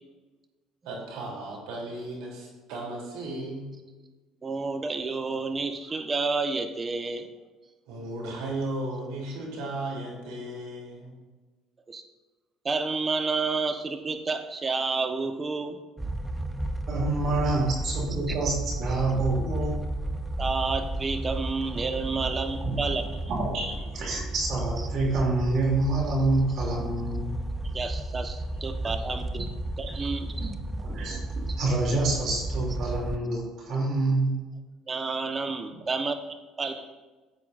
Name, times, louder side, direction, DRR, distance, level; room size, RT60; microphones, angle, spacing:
voice 1, 0.8-3.7 7.9-11.2, right 1 dB, 80° right, -1 dB, 3.4 m, -35 dB
voice 2, 4.4-7.3 11.9-12.0 12.6-15.8 18.3-18.4 20.4-23.1 24.8-24.9 27.7-29.5 29.8-30.5 34.9-36.2 36.6-36.7, right 4 dB, 30° right, 7 dB, 1.2 m, -30 dB
sound 1, 16.0-33.2, right 1 dB, 10° right, 0.6 m, -33 dB
voice 3, 16.9-19.9 22.6-22.8 23.3-27.3 29.9-31.2 31.6-34.4 36.6-36.7, right 2 dB, 60° right, -2 dB, 3.0 m, -27 dB
15.0 x 8.2 x 2.6 m, 1.3 s
hypercardioid pair, 70°, 0 cm